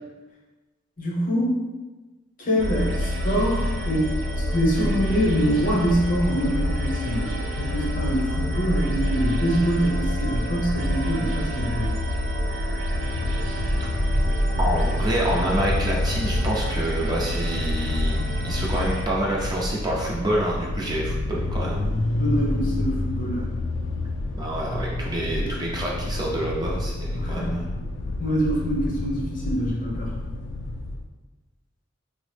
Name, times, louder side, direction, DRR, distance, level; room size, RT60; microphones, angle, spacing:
voice 1, 1.0-1.7 2.4-11.9 22.1-23.5 25.4-25.5 27.1-27.6 28.2-30.1, equal, 45° left, -4 dB, 0.7 m, -25 dB
sound 1, 2.6-19.0, equal, 85° right, 0.4 m, -26 dB
sound 2, 12.7-31.1, left 2 dB, 75° left, 0.3 m, -30 dB
voice 2, 14.6-21.8 24.4-27.7, right 1 dB, 20° right, -3 dB, 0.4 m, -27 dB
3.6 x 2.0 x 3.1 m, 1.2 s
head